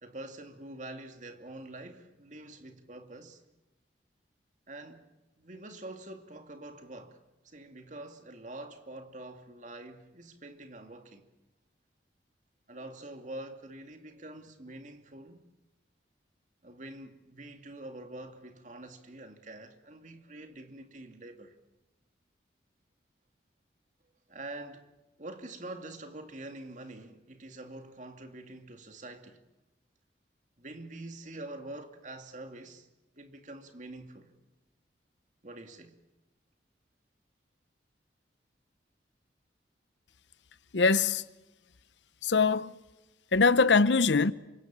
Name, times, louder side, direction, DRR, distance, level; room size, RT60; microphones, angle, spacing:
voice 1, 0.0-3.4 4.7-5.0 5.4-7.2 7.4-11.2 12.7-15.4 16.6-21.5 24.3-24.9 25.2-29.4 30.6-32.9 33.2-34.3 35.4-35.9, right 2 dB, 45° right, 2.4 m, -45 dB
voice 2, 40.7-41.2 42.2-42.7 43.3-44.3, left 4 dB, 90° left, 0.8 m, -23 dB
28.0 x 25.0 x 7.5 m
head